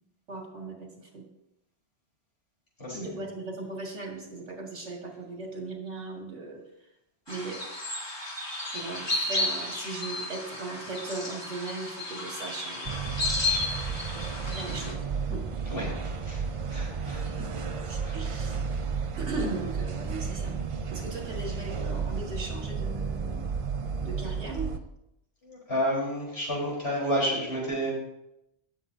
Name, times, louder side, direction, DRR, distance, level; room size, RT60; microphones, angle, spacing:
voice 1, 0.3-1.2 2.9-6.6 7.3-7.6 8.7-13.0 14.4-15.0 15.3-15.4 17.2-17.5 17.9-18.6 19.2-20.6 20.9-23.5 24.0-24.7, right 3 dB, 90° right, -1 dB, 2.3 m, -38 dB
sound 1, 7.3-14.9, left 2 dB, 20° left, 2.2 m, -33 dB
sound 2, 12.8-24.8, right 5 dB, 40° right, 0.5 m, -33 dB
voice 2, 15.7-17.2 18.0-18.2 25.4-27.9, equal, 60° left, -4 dB, 4.5 m, -31 dB
17.5 x 7.6 x 2.8 m, 0.86 s
omnidirectional pair, 1.2 m